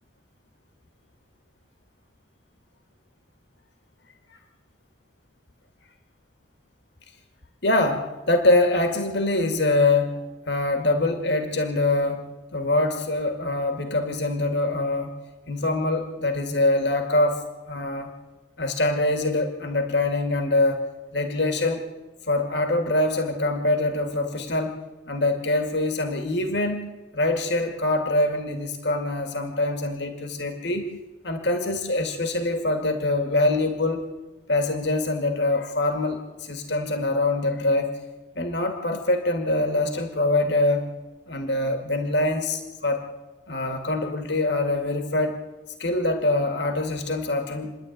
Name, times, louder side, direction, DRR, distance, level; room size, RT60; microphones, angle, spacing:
voice 1, 7.6-15.1 15.5-18.1 18.6-20.9 21.1-21.9 22.3-24.8 25.1-26.9 27.1-30.9 31.2-34.1 34.5-38.0 38.4-40.9 41.3-43.0 43.5-45.4 45.8-47.8, left 2 dB, 65° left, 6 dB, 1.9 m, -24 dB
27.5 x 11.0 x 9.2 m, 1.1 s
head